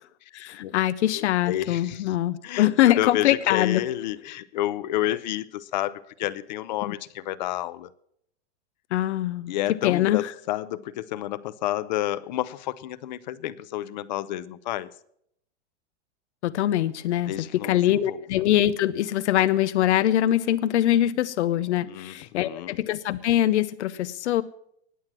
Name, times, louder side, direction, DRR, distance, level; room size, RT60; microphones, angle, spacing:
voice 1, 0.3-3.9 6.8-6.9 8.9-9.5 9.8-10.3 16.4-17.3 17.6-24.4, left 13 dB, 90° left, 16 dB, 0.8 m, -23 dB
voice 2, 1.1-2.2 2.4-7.9 9.5-14.9 17.3-18.2 21.8-22.8, left 14 dB, 40° left, 20 dB, 0.6 m, -30 dB
19.0 x 7.6 x 7.4 m, 0.72 s
supercardioid pair, 180°, 33 cm